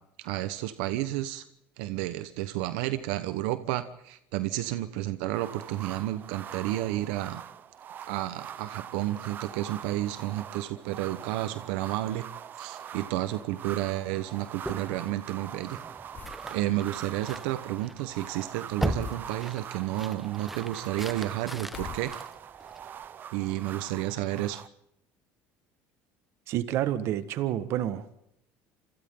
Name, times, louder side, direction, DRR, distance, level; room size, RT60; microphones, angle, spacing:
voice 1, 0.2-1.4 1.8-7.4 8.1-12.2 12.6-15.8 16.5-22.1 23.3-24.6, right 15 dB, 85° right, 12 dB, 1.2 m, -31 dB
sound 1, 5.3-24.7, right 9 dB, 40° right, 0.9 m, -43 dB
sound 2, 14.6-23.1, right 1 dB, 5° right, 1.1 m, -39 dB
sound 3, 16.1-16.5 19.0-19.3 21.7-22.5, left 9 dB, 40° left, 0.9 m, -43 dB
voice 2, 26.5-28.0, right 12 dB, 60° right, 12 dB, 1.7 m, -29 dB
27.5 x 27.0 x 3.9 m, 0.79 s
cardioid pair, 130°, 5 cm